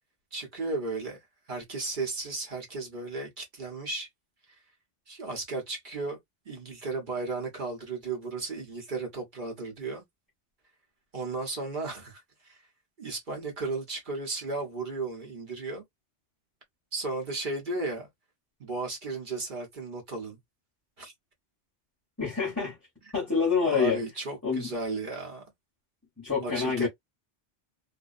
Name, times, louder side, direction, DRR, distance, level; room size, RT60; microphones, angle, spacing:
voice 1, 0.3-1.2 1.5-4.1 5.1-6.2 6.4-10.0 11.1-12.6 13.0-15.8 16.9-18.1 18.6-20.4 21.0-21.1 23.6-25.5 26.4-26.9, right 3 dB, 45° right, 1.1 m, -34 dB
voice 2, 22.2-22.8 23.1-24.0 24.4-24.7 26.2-26.9, left 5 dB, 15° left, 0.9 m, -27 dB
2.6 x 2.1 x 2.3 m
omnidirectional pair, 1.2 m